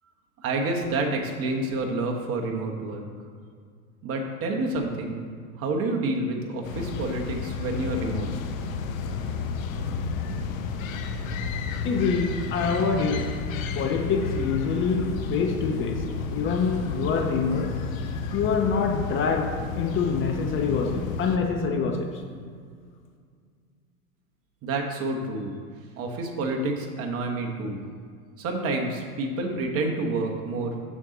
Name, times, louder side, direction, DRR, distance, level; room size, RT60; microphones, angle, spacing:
voice 1, 0.4-3.0 4.0-5.2 5.6-8.3 24.6-25.5 26.0-27.8 28.4-30.8, right 2 dB, 30° right, 1 dB, 1.1 m, -28 dB
sound 1, 6.6-21.4, left 5 dB, 65° left, 0.9 m, -31 dB
voice 2, 11.8-13.3 13.7-16.0 16.3-17.7 18.3-22.2, left 5 dB, 30° left, 3 dB, 0.7 m, -26 dB
7.1 x 6.4 x 3.9 m, 2.1 s
hypercardioid pair, 115°, 44 cm